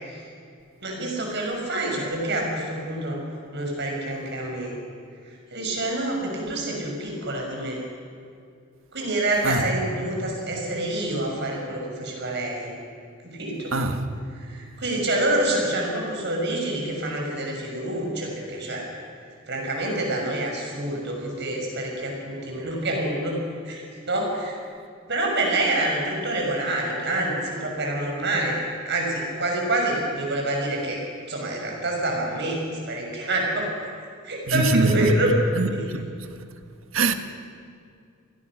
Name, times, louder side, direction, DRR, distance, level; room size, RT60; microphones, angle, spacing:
voice 1, 0.8-3.2 3.5-4.8 5.2-7.8 8.9-12.7 13.2-13.7 14.3-18.9 19.5-23.4 23.7-24.5 25.1-28.6 28.8-31.0 31.3-33.9 34.2-35.8, right 1 dB, 55° right, 6.4 m, -27 dB
voice 2, 13.7-14.1 34.5-35.1 35.6-36.0 36.9-37.1, right 3 dB, 70° right, 1.6 m, -22 dB
27.5 x 20.0 x 6.3 m
head